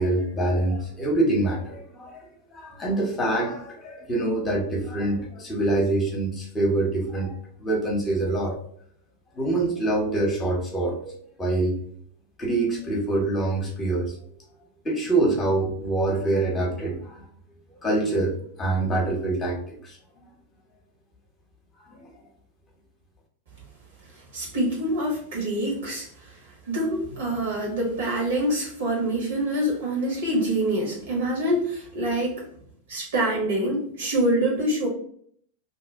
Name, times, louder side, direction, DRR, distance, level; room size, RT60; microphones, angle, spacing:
voice 1, 0.0-2.2 2.5-7.3 7.6-8.5 9.3-11.7 12.4-14.1 14.8-17.2 17.8-18.3 18.6-19.6 19.8-20.2 21.9-22.0, right 2 dB, 20° left, -1 dB, 1.1 m, -25 dB
voice 2, 24.3-26.1 26.7-32.4 32.9-34.9, right 1 dB, 60° right, -2 dB, 1.4 m, -25 dB
2.9 x 2.6 x 3.6 m, 0.63 s
figure-of-eight pair, 90°, 0 cm